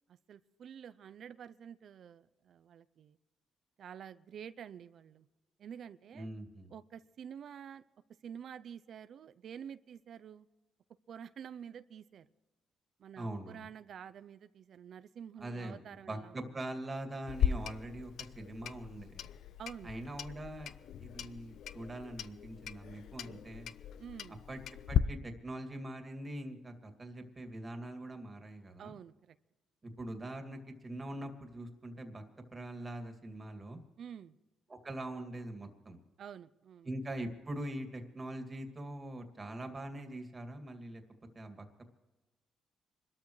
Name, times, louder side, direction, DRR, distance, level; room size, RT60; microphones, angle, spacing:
voice 1, 0.1-3.2 3.8-5.3 5.6-6.3 6.7-7.8 8.2-10.5 11.1-12.3 13.0-16.5 19.6-19.9 24.0-24.4 28.8-29.4 34.0-34.3 36.2-36.9, right 8 dB, 65° right, 13 dB, 0.5 m, -49 dB
voice 2, 6.1-6.7 13.2-13.7 15.4-15.8 16.1-19.3 19.8-20.7 21.0-23.7 24.5-24.6 24.9-28.9 29.8-32.2 32.5-33.8 34.7-36.0 36.8-41.0 41.3-41.7, right 1 dB, 25° right, 5 dB, 2.4 m, -43 dB
Clock, 17.3-25.0, left 10 dB, 70° left, 0.5 m, -37 dB
26.0 x 13.0 x 3.2 m, 1.1 s
cardioid pair, 90°, 0 cm